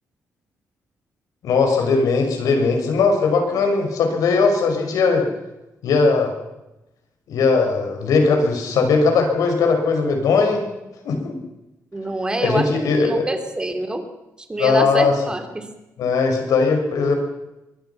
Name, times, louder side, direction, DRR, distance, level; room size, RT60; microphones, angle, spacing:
voice 1, 1.4-5.3 5.8-6.3 7.3-10.6 11.0-11.4 12.4-13.3 14.6-15.1 16.0-17.2, left 4 dB, 85° left, 4 dB, 5.8 m, -19 dB
voice 2, 11.9-14.0 14.5-15.7, right 2 dB, 15° right, 6 dB, 2.9 m, -26 dB
23.5 x 21.5 x 5.8 m, 0.98 s
cardioid pair, 140°, 6 cm